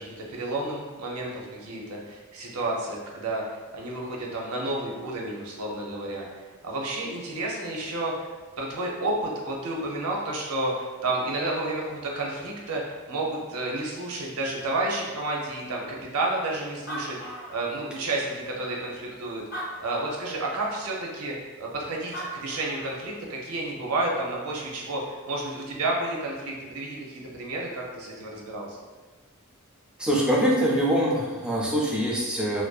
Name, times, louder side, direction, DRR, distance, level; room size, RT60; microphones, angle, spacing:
voice 1, 0.0-3.4 3.7-8.3 8.6-19.4 19.8-28.8, right 2 dB, 85° right, -2 dB, 0.6 m, -31 dB
Animal, 16.4-16.5 16.7-18.1 18.8-18.9 19.4-20.4 21.8-21.9 22.1-23.1, right 1 dB, 40° left, 0.7 m, -38 dB
voice 2, 30.0-32.6, equal, 5° right, -4 dB, 0.3 m, -24 dB
2.5 x 2.1 x 2.3 m, 1.3 s
head